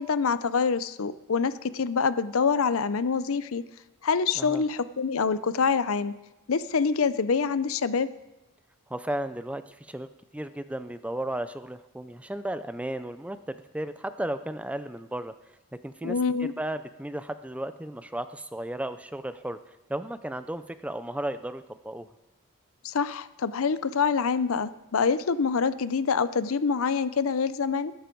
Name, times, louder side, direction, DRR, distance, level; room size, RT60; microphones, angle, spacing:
voice 1, 0.0-3.6 4.0-6.1 6.5-8.1 16.0-16.5 22.8-27.9, left 5 dB, 70° left, 15 dB, 0.6 m, -26 dB
voice 2, 8.9-10.1 10.3-15.3 15.8-22.1, right 1 dB, 5° right, 11 dB, 0.4 m, -34 dB
19.5 x 10.5 x 4.6 m, 1.0 s
head